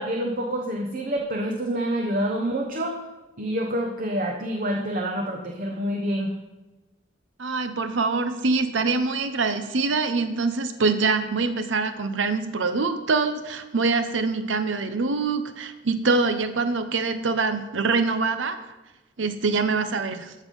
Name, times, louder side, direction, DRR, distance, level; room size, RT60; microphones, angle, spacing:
voice 1, 0.0-3.0 3.4-6.3, equal, 45° right, 2 dB, 0.9 m, -27 dB
voice 2, 7.4-18.6 19.2-20.3, right 4 dB, 80° right, 9 dB, 0.8 m, -24 dB
14.0 x 5.4 x 5.3 m, 1.1 s
head